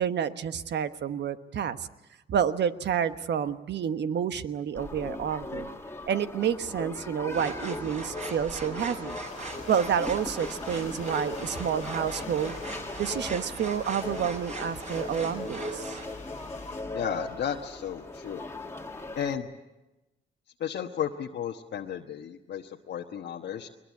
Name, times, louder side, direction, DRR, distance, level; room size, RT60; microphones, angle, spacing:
voice 1, 0.0-1.9 2.3-5.7 6.1-9.2 9.7-12.5 13.0-16.0, right 8 dB, 60° right, 11 dB, 1.2 m, -29 dB
sound 1, 4.7-19.4, left 2 dB, 15° left, 2.0 m, -39 dB
sound 2, 7.3-16.1, right 2 dB, 35° right, 8.0 m, -40 dB
sound 3, 9.1-16.8, left 5 dB, 35° left, 2.3 m, -48 dB
voice 2, 16.9-18.4 19.1-19.5 20.6-23.7, left 8 dB, 60° left, 0 dB, 1.3 m, -33 dB
22.0 x 21.0 x 8.5 m, 1.0 s
cardioid pair, 90°, 20 cm